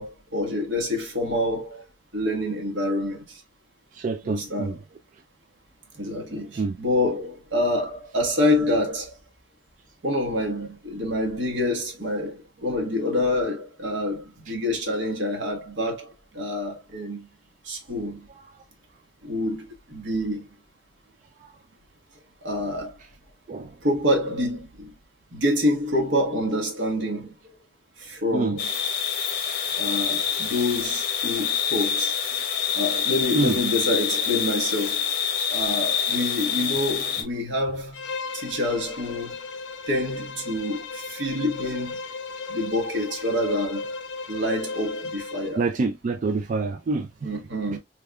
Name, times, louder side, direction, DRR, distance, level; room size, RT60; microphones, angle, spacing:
voice 1, 0.0-1.8 2.1-3.4 4.2-4.7 5.9-9.1 10.0-17.3 17.6-18.3 19.2-20.5 22.4-23.0 23.8-24.9 25.3-27.5 28.0-28.7 29.8-32.1 32.7-35.0 35.5-39.4 39.9-42.0 42.5-43.9 44.3-45.6 47.2-47.8, left 1 dB, 80° right, 1.3 m, -27 dB
voice 2, 3.9-4.8 6.6-6.8 21.4-21.5 23.5-23.7 28.3-28.5 33.3-33.6 45.6-47.4 47.7-47.8, right 3 dB, 45° right, 0.3 m, -26 dB
sound 1, 28.6-37.2, left 8 dB, 60° left, 0.9 m, -26 dB
Bowed string instrument, 37.9-45.6, left 4 dB, 80° left, 0.5 m, -35 dB
3.5 x 3.4 x 2.2 m
head